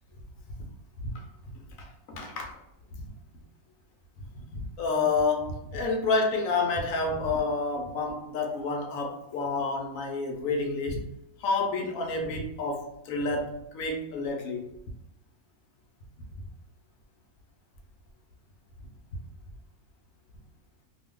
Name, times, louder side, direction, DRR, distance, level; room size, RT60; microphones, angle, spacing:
voice 1, 1.8-2.6 2.9-3.0 4.2-11.1 11.4-14.6, left 3 dB, 70° left, 2 dB, 0.9 m, -29 dB
2.6 x 2.2 x 3.5 m, 0.81 s
omnidirectional pair, 1.6 m